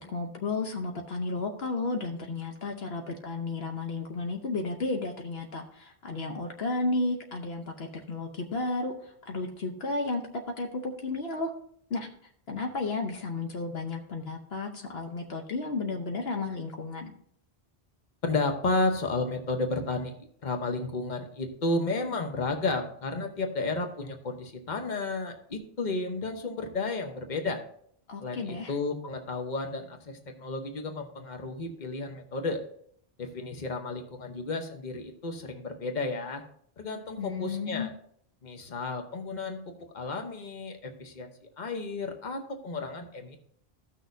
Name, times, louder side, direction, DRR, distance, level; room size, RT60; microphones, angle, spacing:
voice 1, 0.0-11.5 11.9-12.1 12.5-17.1 28.1-28.7 37.2-37.9, left 3 dB, 65° left, 3 dB, 1.1 m, -33 dB
voice 2, 18.2-20.1 20.4-27.6 28.2-32.6 33.2-36.4 36.8-37.9 38.4-43.4, left 3 dB, 45° left, 5 dB, 1.1 m, -32 dB
15.5 x 6.3 x 2.7 m, 0.64 s
omnidirectional pair, 1.1 m